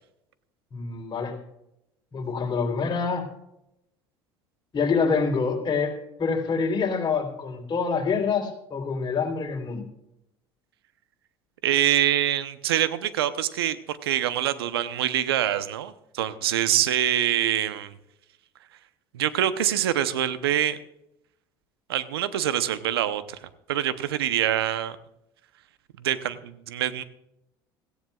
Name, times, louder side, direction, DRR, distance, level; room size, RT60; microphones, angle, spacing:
voice 1, 0.7-1.3 2.1-3.3 4.7-9.8, left 5 dB, 35° left, 2 dB, 3.8 m, -26 dB
voice 2, 11.6-17.9 19.1-20.8 21.9-23.4 23.7-25.0 26.0-27.0, right 11 dB, 85° right, 13 dB, 0.8 m, -25 dB
17.5 x 15.5 x 2.4 m, 0.83 s
hypercardioid pair, 80°, 13 cm